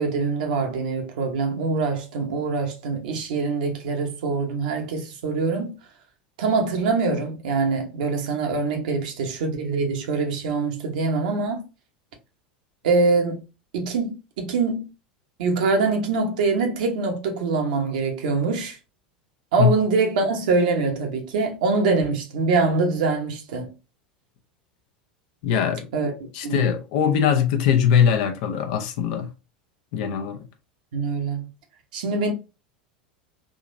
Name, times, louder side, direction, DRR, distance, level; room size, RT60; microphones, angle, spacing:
voice 1, 0.0-5.7 6.4-11.6 12.8-13.4 13.7-14.9 15.4-18.8 19.5-23.7 25.9-26.1 26.4-26.7 30.9-31.5 31.9-32.3, right 4 dB, 65° right, 1.0 m, -24 dB
voice 2, 25.4-25.9 26.3-29.3 29.9-30.4, left 8 dB, 55° left, 0.7 m, -21 dB
3.7 x 2.9 x 2.6 m
figure-of-eight pair, 80°, 5 cm